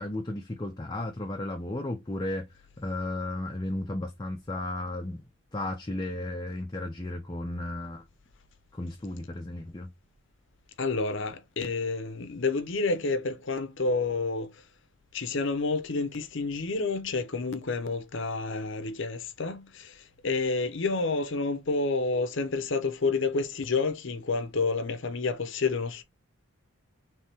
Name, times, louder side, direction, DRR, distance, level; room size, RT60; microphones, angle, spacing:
voice 1, 0.0-2.5 2.8-5.2 5.5-8.1 8.7-9.9, left 1 dB, 20° left, 0.5 m, -34 dB
voice 2, 10.8-14.5 15.1-26.0, left 3 dB, 60° left, 0.7 m, -29 dB
3.3 x 3.2 x 4.5 m
head